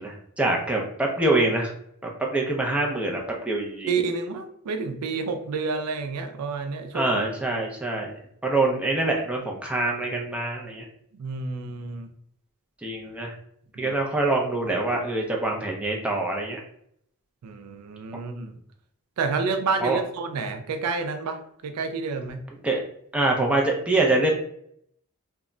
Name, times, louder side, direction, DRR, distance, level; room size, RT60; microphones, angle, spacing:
voice 1, 0.0-1.7 2.0-3.9 6.9-10.9 12.8-13.3 13.8-16.6 19.8-20.0 22.6-22.8 23.1-24.3, right 2 dB, 5° right, -1 dB, 0.4 m, -25 dB
voice 2, 3.9-7.1 11.1-12.1 13.8-13.9 17.4-18.5 19.2-21.4 21.6-22.4, right 4 dB, 90° right, 7 dB, 0.4 m, -29 dB
2.2 x 2.0 x 3.6 m, 0.69 s
head